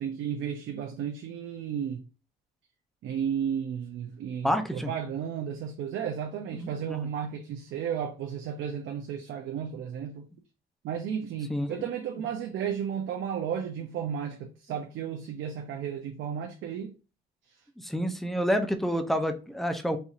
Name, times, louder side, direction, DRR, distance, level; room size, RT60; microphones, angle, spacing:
voice 1, 0.0-2.1 3.0-10.3 10.8-16.9, right 8 dB, 75° right, 0.6 m, -33 dB
voice 2, 4.4-4.9 6.5-7.0 11.5-11.9 17.8-20.0, equal, ahead, 0.6 m, -29 dB
4.3 x 2.7 x 2.5 m
cardioid pair, 90°, 20 cm